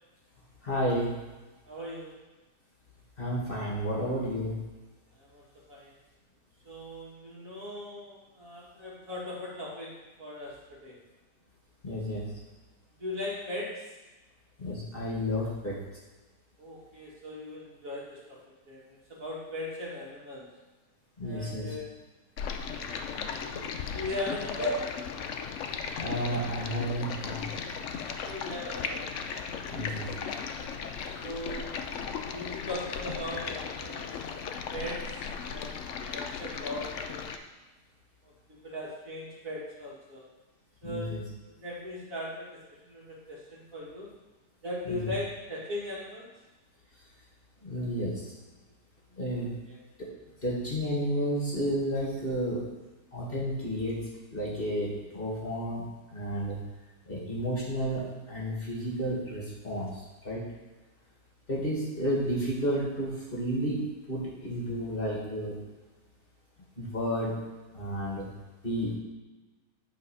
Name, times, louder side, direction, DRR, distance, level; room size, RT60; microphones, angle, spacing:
voice 1, 0.6-1.1 3.2-4.5 11.8-12.2 14.6-15.8 21.2-21.7 24.6-24.7 26.0-27.4 29.7-30.1 40.8-41.2 44.9-45.1 47.6-48.3 49.2-49.5 50.4-52.6 53.1-54.0 54.3-55.8 56.1-56.6 57.1-60.4 61.5-65.5 66.8-67.4 67.7-68.3 68.6-69.0, equal, 35° left, -5 dB, 1.9 m, -31 dB
voice 2, 1.7-2.2 5.1-5.9 6.6-11.0 13.0-14.0 16.6-20.5 21.2-21.9 22.6-24.7 28.2-29.8 31.2-31.8 32.3-37.3 38.5-40.3 40.8-41.2 41.5-44.1 44.6-46.3 49.3-49.8, left 1 dB, 50° right, -5 dB, 2.2 m, -39 dB
Stream, 22.4-37.4, left 6 dB, 65° left, 0.8 m, -36 dB
9.4 x 4.1 x 5.6 m, 1.2 s
omnidirectional pair, 1.8 m